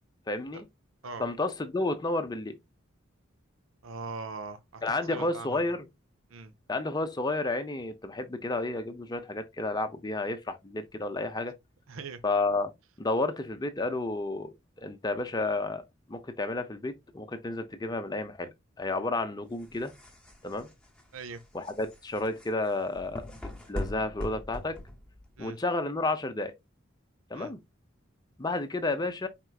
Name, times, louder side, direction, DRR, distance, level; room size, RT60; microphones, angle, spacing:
voice 1, 0.3-0.6 1.2-2.6 4.8-5.9 6.7-11.5 12.2-12.7 13.0-15.8 16.1-19.9 20.4-20.7 21.5-24.8 25.4-26.5 27.3-27.6 28.4-29.3, left 2 dB, 20° left, 0.6 m, -31 dB
voice 2, 3.8-5.7 6.3-6.5 11.9-12.2 21.1-21.4 25.4-25.6 27.3-27.5, right 4 dB, 85° right, 0.6 m, -41 dB
sound 1, 19.5-25.4, left 1 dB, 5° left, 1.0 m, -41 dB
4.5 x 3.7 x 2.3 m
head